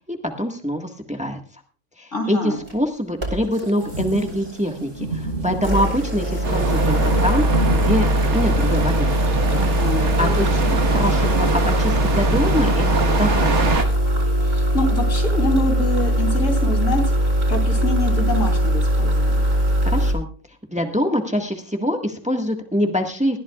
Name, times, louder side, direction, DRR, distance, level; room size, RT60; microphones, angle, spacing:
voice 1, 0.1-1.4 2.0-9.1 10.2-10.5 10.9-13.7 19.8-20.3 20.7-23.4, equal, 5° right, 4 dB, 1.5 m, -24 dB
voice 2, 2.1-2.6 9.5-10.8 14.4-17.0 17.5-19.5, left 1 dB, 80° left, 3 dB, 3.7 m, -26 dB
sound 1, 2.6-2.7 3.2-4.8 5.5-20.1, equal, 50° right, 4.5 m, -21 dB
sound 2, 3.8-14.6, right 2 dB, 85° right, 5.6 m, -32 dB
sound 3, 6.4-13.8, right 3 dB, 70° right, 1.7 m, -24 dB
20.0 x 14.0 x 2.4 m, 0.36 s
omnidirectional pair, 1.3 m